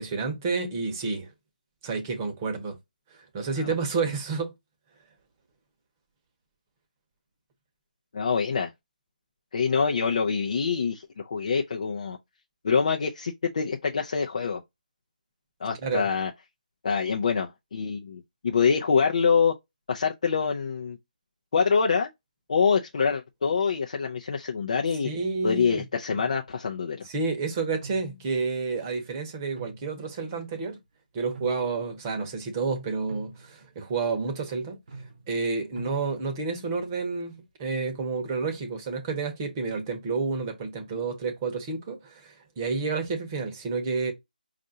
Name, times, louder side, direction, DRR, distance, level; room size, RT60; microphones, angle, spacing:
voice 1, 0.0-1.3 1.8-2.8 3.1-4.5 15.8-16.1 25.0-25.9 27.0-30.8 31.1-34.8 35.3-44.1, right 4 dB, 20° right, 0.9 m, -30 dB
voice 2, 8.1-8.7 9.5-12.2 12.6-14.6 15.6-16.3 16.8-19.5 19.9-21.0 21.5-22.1 22.5-25.1 25.4-27.1, left 5 dB, 50° left, 0.5 m, -25 dB
sound 1, 26.1-26.8 27.8-29.0 29.3-30.5 31.2-32.0 33.1-33.8 34.9-36.5, right 3 dB, 60° right, 0.9 m, -46 dB
5.3 x 2.5 x 2.7 m
figure-of-eight pair, 160°, 5 cm